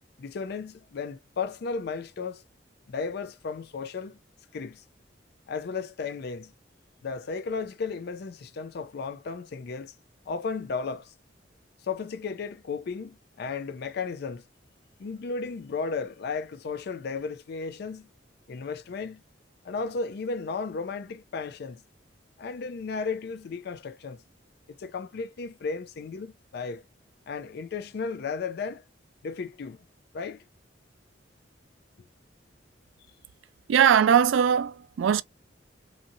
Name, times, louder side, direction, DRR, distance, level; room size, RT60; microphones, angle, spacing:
voice 1, 0.2-2.4 2.9-4.2 4.5-4.8 5.5-6.5 7.0-9.9 10.3-11.1 11.8-14.4 15.0-18.1 18.5-19.2 19.6-21.8 22.4-24.2 24.7-26.8 27.3-28.8 29.2-29.8 30.1-30.4, left 4 dB, 60° left, 0.4 m, -34 dB
voice 2, 33.7-35.2, right 8 dB, 85° right, 0.3 m, -20 dB
2.6 x 2.6 x 2.6 m
head